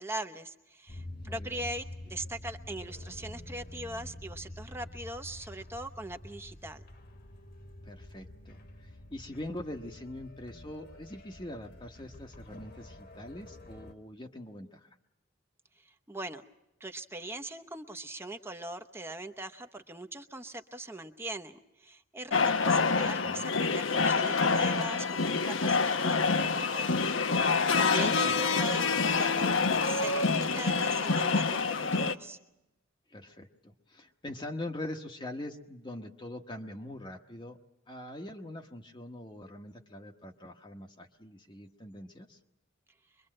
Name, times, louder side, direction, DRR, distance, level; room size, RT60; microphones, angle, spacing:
voice 1, 0.0-6.8 15.8-16.4 16.8-27.1 27.4-32.4, right 2 dB, 10° right, 7 dB, 0.9 m, -41 dB
sound 1, 0.9-13.9, left 1 dB, 50° left, 1.7 m, -47 dB
voice 2, 1.2-1.6 7.8-15.0 23.0-23.5 28.1-28.4 33.1-37.6 37.9-42.4, left 1 dB, 25° left, 3 dB, 1.1 m, -43 dB
sound 2, 22.3-32.1, left 4 dB, 75° left, 1.1 m, -27 dB
24.5 x 22.5 x 7.7 m, 0.88 s
head